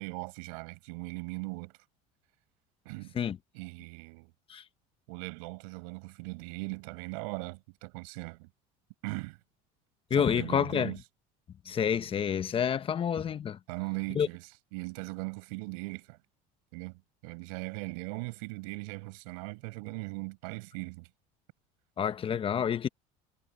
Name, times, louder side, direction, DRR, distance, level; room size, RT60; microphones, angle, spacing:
voice 1, 0.0-1.7 2.8-3.2 3.5-4.3 5.1-8.5 9.0-9.4 10.1-11.0 13.7-16.2 16.7-21.1, right 29 dB, 80° right, 6.9 m, -39 dB
voice 2, 10.1-10.9 11.6-13.6 14.1-14.3 22.0-22.9, left 8 dB, 30° left, 0.9 m, -28 dB
supercardioid pair, 120°, 18 cm